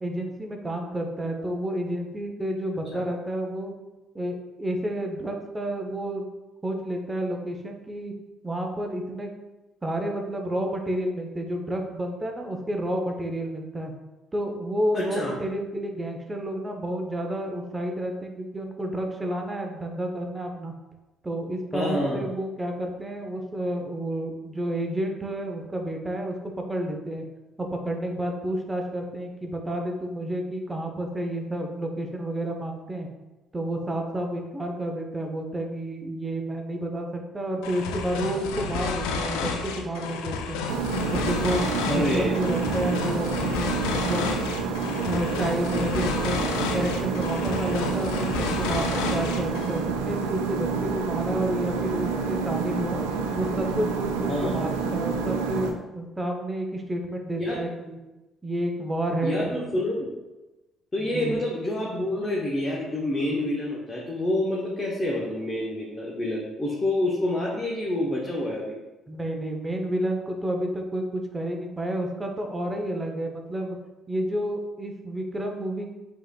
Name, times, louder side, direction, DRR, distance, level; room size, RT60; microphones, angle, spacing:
voice 1, 0.0-3.7 4.1-6.3 6.6-8.1 8.4-9.3 9.8-13.9 14.3-20.7 21.2-27.2 27.6-33.1 33.5-40.6 41.1-44.3 45.0-46.4 46.7-53.0 53.3-58.0 58.4-59.6 61.0-61.4 69.1-73.8 74.1-75.9, right 1 dB, 20° right, 2 dB, 0.7 m, -30 dB
voice 2, 14.9-15.3 21.7-22.3 41.9-42.3 54.3-54.6 57.4-57.6 59.2-60.1 60.9-68.7, left 1 dB, 30° left, -4 dB, 0.8 m, -27 dB
sound 1, 37.6-49.9, left 5 dB, 75° left, 0.3 m, -31 dB
sound 2, 40.7-55.7, right 5 dB, 85° right, 0.3 m, -28 dB
4.8 x 2.9 x 2.2 m, 1.1 s
hypercardioid pair, 50°, 0 cm